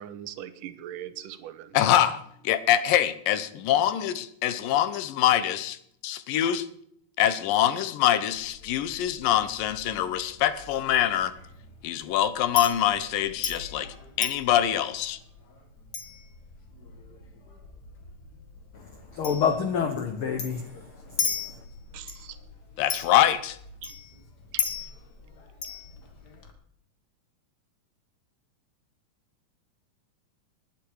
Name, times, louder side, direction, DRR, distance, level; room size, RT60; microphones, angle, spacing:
voice 1, 0.0-1.8 21.9-22.4 23.8-23.9 24.5-24.7, right 11 dB, 80° right, 2.5 m, -40 dB
voice 2, 1.7-5.8 6.0-6.6 7.2-11.3 11.8-15.2 22.8-23.6, left 11 dB, 90° left, 2.7 m, -24 dB
Chink clink, 8.3-26.5, left 6 dB, 40° left, 1.8 m, -38 dB
voice 3, 18.7-21.6, left 7 dB, 65° left, 1.3 m, -29 dB
19.5 x 10.0 x 4.7 m
omnidirectional pair, 3.8 m